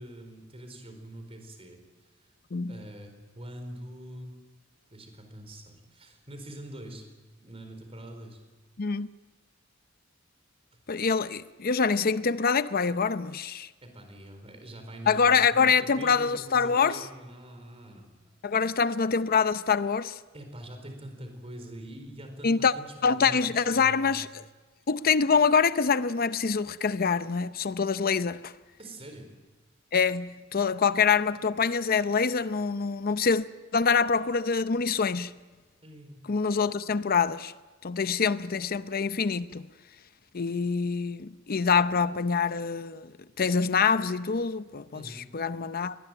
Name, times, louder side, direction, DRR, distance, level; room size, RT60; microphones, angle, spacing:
voice 1, 0.0-1.8 2.7-4.4 4.9-7.0 7.4-8.4 13.8-18.3 18.6-18.7 20.3-24.2 28.8-29.3 35.8-36.2 44.9-45.2, right 1 dB, 30° right, 4.5 m, -44 dB
voice 2, 10.9-13.7 15.1-17.0 18.4-20.2 22.4-22.7 23.0-24.4 24.9-28.5 29.9-33.4 33.7-35.3 36.3-37.5 37.8-39.6 40.3-43.1 43.4-46.0, left 5 dB, 50° left, 0.7 m, -25 dB
22.5 x 19.5 x 9.1 m
head